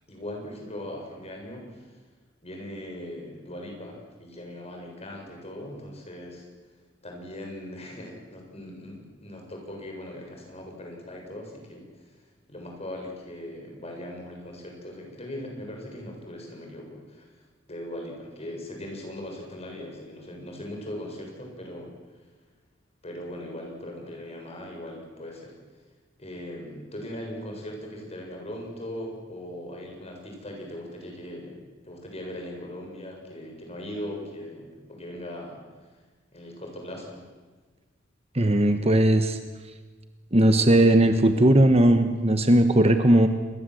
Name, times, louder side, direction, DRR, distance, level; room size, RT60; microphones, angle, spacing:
voice 1, 0.1-1.9 2.4-6.5 7.0-12.1 12.5-17.3 17.7-21.9 23.0-25.5 26.2-35.6 36.3-37.2, left 1 dB, 35° left, 1 dB, 7.3 m, -39 dB
voice 2, 38.3-39.4 40.3-43.3, right 1 dB, 30° right, 8 dB, 1.3 m, -18 dB
28.5 x 21.5 x 8.0 m, 1.3 s
head